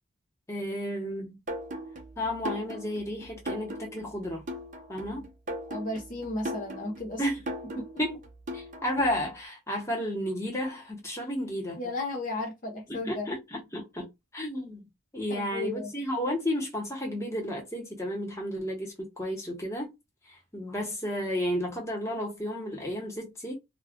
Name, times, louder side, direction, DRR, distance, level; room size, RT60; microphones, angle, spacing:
voice 1, 0.5-1.4 2.2-4.4 4.9-5.3 7.2-7.4 8.0-8.2 8.5-11.8 12.9-14.1 14.3-14.9 15.1-19.9 20.3-23.5, equal, 15° left, 0.9 m, -32 dB
sound 1, 1.5-9.3, equal, 40° right, 0.8 m, -39 dB
voice 2, 5.7-7.2 7.8-7.9 11.8-13.3 15.3-15.9, left 2 dB, 40° left, 0.7 m, -34 dB
2.3 x 2.1 x 3.5 m
head